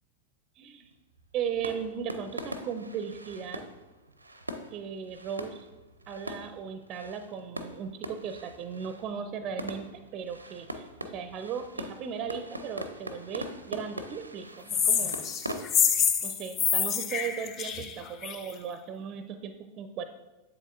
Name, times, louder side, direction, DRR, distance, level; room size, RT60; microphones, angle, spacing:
voice 1, 0.6-0.9 1.3-3.6 4.7-5.7 6.1-15.2 16.2-20.0, right 7 dB, 35° right, 9 dB, 0.4 m, -37 dB
sound 1, 0.8-15.7, equal, 85° right, 0.5 m, -42 dB
sound 2, 14.7-18.5, left 7 dB, 35° left, 0.5 m, -27 dB
7.8 x 7.3 x 2.5 m, 1.1 s
figure-of-eight pair, 90°, 0 cm